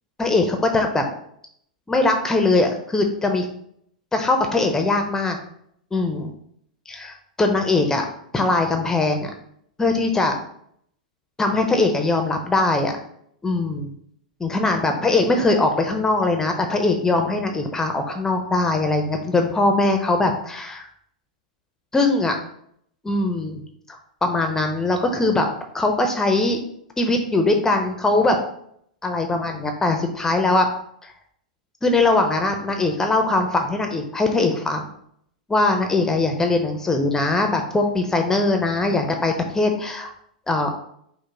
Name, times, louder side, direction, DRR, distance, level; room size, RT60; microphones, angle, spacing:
voice 1, 0.2-1.0 1.9-3.5 4.1-5.4 5.9-6.3 6.9-8.1 8.3-9.3 9.8-10.3 11.4-12.9 13.4-13.9 14.4-20.9 21.9-22.3 23.0-23.6 23.9-25.5 25.7-26.6 27.0-28.4 29.0-30.7 31.0-31.1 31.8-34.8 35.5-40.1 40.5-40.7, left 2 dB, 10° left, 4 dB, 0.5 m, -21 dB
5.1 x 2.0 x 3.8 m, 0.68 s
hypercardioid pair, 105°, 4 cm